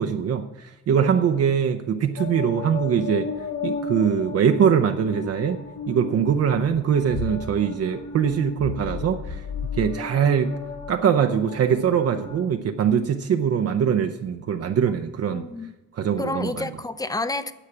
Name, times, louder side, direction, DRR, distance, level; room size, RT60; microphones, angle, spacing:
voice 1, 0.0-3.3 3.6-5.6 5.9-9.4 9.8-10.5 10.9-15.5 15.9-16.7, right 7 dB, 55° right, 6 dB, 0.7 m, -22 dB
sound 1, 2.2-12.4, left 4 dB, 70° left, 1.5 m, -34 dB
voice 2, 14.9-15.7 16.2-17.5, left 2 dB, 10° left, 13 dB, 0.6 m, -30 dB
9.9 x 7.3 x 6.0 m, 1.1 s
cardioid pair, 90°, 30 cm